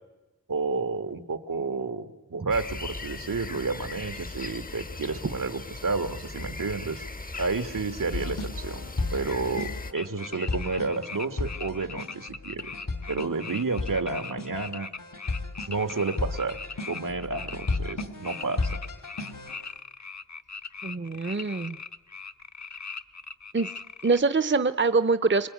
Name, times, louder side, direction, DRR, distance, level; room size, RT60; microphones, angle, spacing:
voice 1, 0.5-7.0 7.4-8.8 9.1-12.7 13.1-14.9 15.7-16.6 16.9-18.8, right 4 dB, 80° right, 9 dB, 1.7 m, -30 dB
sound 1, 2.5-9.9, left 3 dB, 25° left, 0.8 m, -38 dB
sound 2, 8.1-19.6, left 3 dB, 80° left, 2.4 m, -34 dB
sound 3, 10.0-24.2, left 4 dB, 60° left, 1.0 m, -40 dB
voice 2, 20.8-21.8 23.5-23.7 24.0-25.5, right 4 dB, 35° right, 13 dB, 0.8 m, -24 dB
26.0 x 21.5 x 9.5 m, 1.1 s
wide cardioid pair, 50°, 32 cm